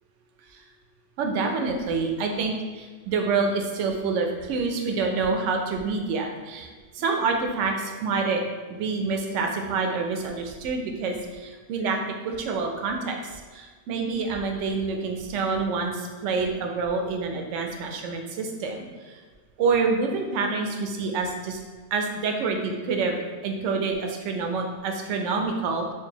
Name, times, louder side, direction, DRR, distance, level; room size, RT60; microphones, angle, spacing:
voice 1, 1.2-8.4 8.7-19.2 19.6-21.6 21.9-25.9, right 4 dB, 65° right, 3 dB, 0.7 m, -27 dB
4.6 x 2.5 x 2.8 m, 1.5 s
omnidirectional pair, 1.6 m